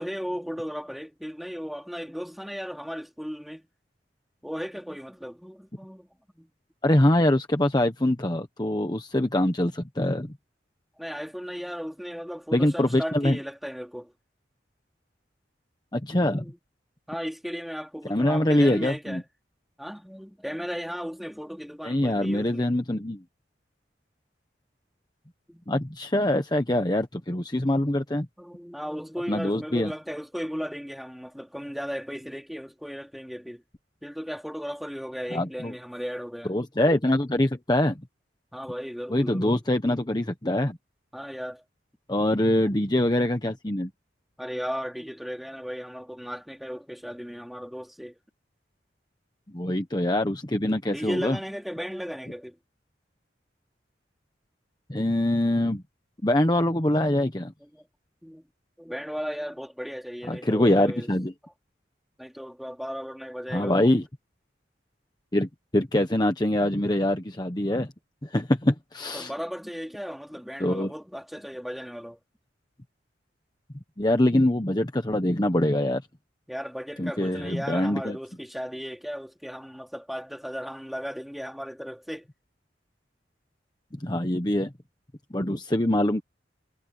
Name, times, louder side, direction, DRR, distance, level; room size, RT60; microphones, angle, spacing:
voice 1, 0.0-3.7 4.4-6.1 6.3-6.5 11.0-14.1 16.2-16.6 17.1-19.2 19.8-22.7 25.5-25.6 28.4-33.6 34.0-36.6 38.5-39.6 41.1-41.6 42.7-43.2 44.4-48.2 50.9-52.6 57.6-57.9 58.2-58.4 58.8-61.1 62.2-63.9 69.1-72.2 76.5-82.3, equal, ahead, 4.1 m, -36 dB
voice 2, 6.8-10.3 12.5-13.4 15.9-16.5 18.1-19.2 21.8-23.2 25.7-28.3 29.3-29.9 35.3-35.7 36.5-38.0 39.1-40.8 42.1-43.9 49.5-51.4 54.9-55.8 56.2-57.5 60.3-61.3 63.5-64.0 65.3-67.9 68.2-69.3 70.6-70.9 74.0-76.0 77.0-78.2 83.9-84.7 85.3-86.2, left 1 dB, 25° left, 1.1 m, -24 dB
head